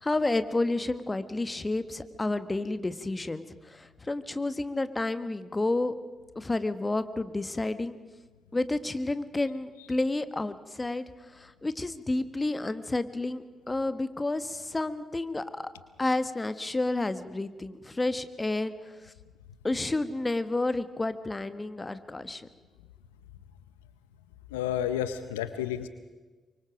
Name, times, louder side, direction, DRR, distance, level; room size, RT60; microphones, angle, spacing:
voice 1, 0.0-5.9 6.3-8.0 8.5-15.7 16.0-19.1 19.6-22.5, left 2 dB, 25° left, 12 dB, 1.5 m, -30 dB
voice 2, 24.5-25.9, left 10 dB, 85° left, 12 dB, 0.7 m, -30 dB
26.0 x 24.0 x 5.2 m, 1.3 s
hypercardioid pair, 40°, 0 cm